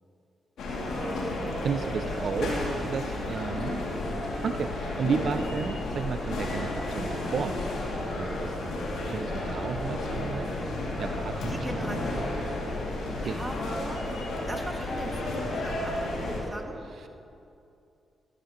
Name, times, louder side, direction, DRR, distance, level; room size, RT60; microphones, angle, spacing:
sound 1, 0.6-16.4, left 1 dB, 75° left, 2.2 m, -32 dB
voice 1, 1.6-3.8 4.4-7.8 8.2-8.6 9.1-10.5 11.0-12.0 13.2-13.4 17.0-17.1, right 6 dB, 65° right, 9 dB, 0.3 m, -33 dB
sound 2, 4.6-13.1, left 1 dB, 25° left, 2.7 m, -47 dB
voice 2, 11.5-12.4 13.2-14.0 14.5-16.0 16.3-16.8, right 1 dB, 20° right, 2 dB, 1.8 m, -39 dB
13.5 x 13.5 x 2.9 m, 2.6 s
supercardioid pair, 45°, 0 cm